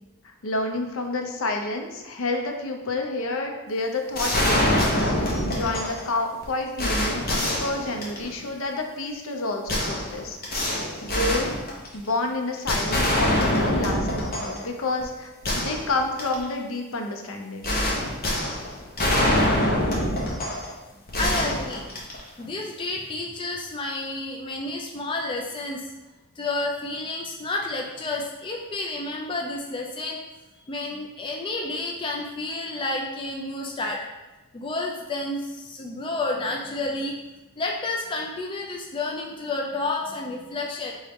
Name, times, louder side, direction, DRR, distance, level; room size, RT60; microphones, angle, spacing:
voice 1, 0.2-4.9 5.2-10.4 10.7-11.6 11.9-15.3 15.5-17.8, left 2 dB, 65° left, 3 dB, 0.6 m, -29 dB
sound 1, 4.2-6.1 6.4-6.5 6.8-8.4 9.7-12.1 12.7-14.6 15.0-15.1 15.4-16.4 17.6-20.7 21.1-22.4, left 1 dB, 45° left, 0.9 m, -25 dB
voice 2, 21.2-21.9 22.4-25.9 26.4-30.2 30.7-34.1 34.5-37.2 37.6-40.9, left 2 dB, 25° left, 0 dB, 0.3 m, -30 dB
4.0 x 3.5 x 3.5 m, 1.1 s
head